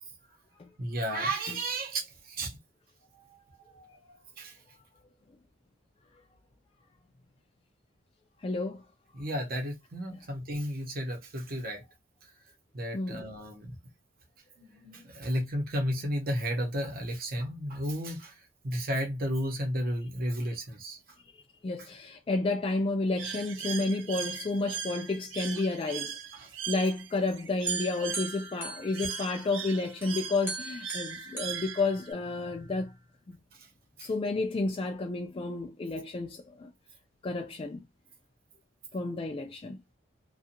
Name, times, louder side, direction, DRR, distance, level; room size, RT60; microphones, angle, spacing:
voice 1, 0.8-2.6 3.1-3.4 3.7-4.6 9.1-11.8 12.7-13.8 14.6-21.0 21.8-21.9 26.4-26.5 34.0-34.1, equal, 50° right, 0.9 m, -33 dB
voice 2, 8.4-8.8 10.1-10.2 12.9-13.3 21.3-26.2 26.7-32.9 33.3-33.4 34.0-36.7 37.2-37.8 38.9-39.8, left 3 dB, 30° left, 0.3 m, -31 dB
Bird, 23.2-32.1, right 8 dB, 80° right, 0.5 m, -39 dB
sound 1, 27.7-29.6 30.0-32.5, right 4 dB, 10° right, 0.9 m, -39 dB
2.6 x 2.4 x 2.8 m
head